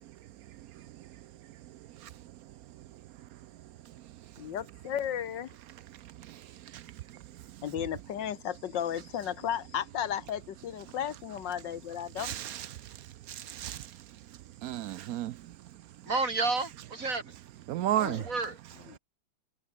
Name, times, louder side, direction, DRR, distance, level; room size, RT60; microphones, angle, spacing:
voice 1, 0.0-3.5 3.8-4.5 5.9-7.6 12.2-15.6 17.7-18.3, right 13 dB, 85° right, 0.7 m, -38 dB
voice 2, 4.4-5.5 7.6-12.3 17.9-18.3, left 9 dB, 70° left, 1.6 m, -34 dB
voice 3, 16.0-17.4 18.1-18.6, right 3 dB, 40° right, 3.5 m, -31 dB
omnidirectional pair, 2.1 m